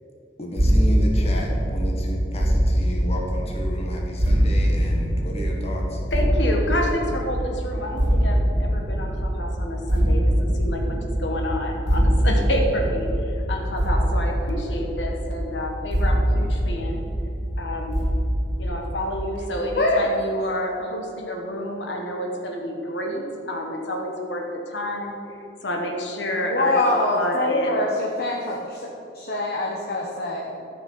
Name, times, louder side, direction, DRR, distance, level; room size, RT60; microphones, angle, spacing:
voice 1, 0.4-6.0, equal, 35° left, -1 dB, 1.5 m, -32 dB
sound 1, 0.6-19.5, equal, 70° right, 1.8 m, -23 dB
voice 2, 6.1-17.0 17.6-18.0 18.6-25.1 25.6-26.8 27.1-27.8 28.4-28.5, equal, 75° left, 1 dB, 1.5 m, -29 dB
voice 3, 19.8-20.1 26.4-28.9 29.1-30.5, left 2 dB, 60° left, -2 dB, 1.2 m, -24 dB
12.5 x 6.1 x 5.6 m, 2.8 s
head